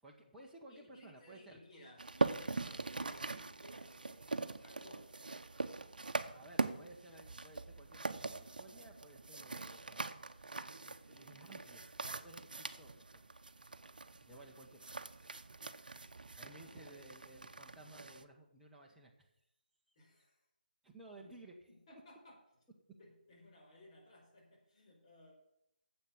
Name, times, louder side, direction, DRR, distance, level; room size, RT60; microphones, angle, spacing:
voice 1, 0.0-1.6 6.3-10.1 10.4-13.2 14.1-14.9 16.4-19.3 19.9-20.0 20.8-21.7, right 1 dB, 5° right, -4 dB, 1.2 m, -57 dB
voice 2, 0.7-5.2 11.0-11.8 16.5-17.2 18.1-18.3 19.9-20.4 21.2-21.4 21.7-22.4 23.0-25.3, left 1 dB, 35° left, -2 dB, 4.9 m, -60 dB
sound 1, 2.0-18.2, right 3 dB, 65° right, 0.8 m, -42 dB
9.8 x 7.6 x 7.0 m, 0.81 s
figure-of-eight pair, 150°, 5 cm